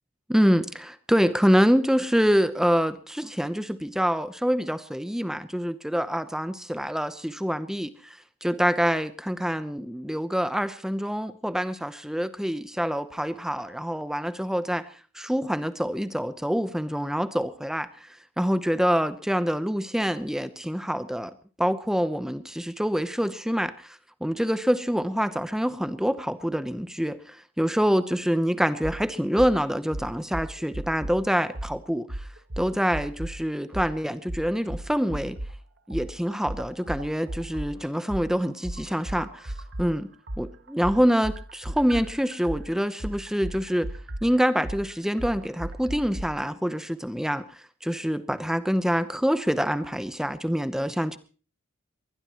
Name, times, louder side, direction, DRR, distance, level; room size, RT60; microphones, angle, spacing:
voice 1, 0.3-14.9 15.1-32.3 32.6-35.4 35.9-39.5 39.8-40.1 40.4-43.9 44.2-51.2, equal, ahead, 12 dB, 0.8 m, -26 dB
sound 1, 28.8-29.0 29.4-29.5 29.9-31.2 31.5-31.7 32.1-33.4 33.7-33.9 34.3-35.5 35.9-39.9 40.3-46.3, right 1 dB, 55° right, 1.5 m, -35 dB
21.5 x 20.5 x 3.0 m, 0.37 s
head